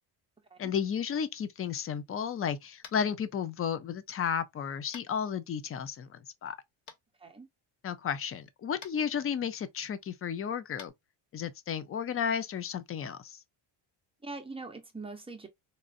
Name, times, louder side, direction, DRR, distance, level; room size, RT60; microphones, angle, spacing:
voice 1, 0.6-6.6 7.8-10.9 11.3-13.4, left 7 dB, 30° left, 0.4 m, -33 dB
Tap, 2.8-3.1 4.9-5.1 6.9-7.0 8.8-8.9 10.7-10.9, left 7 dB, 60° left, 1.1 m, -47 dB
voice 2, 7.2-7.5 14.2-15.5, right 3 dB, 10° right, 0.7 m, -42 dB
4.1 x 2.4 x 2.5 m
cardioid pair, 145°, 49 cm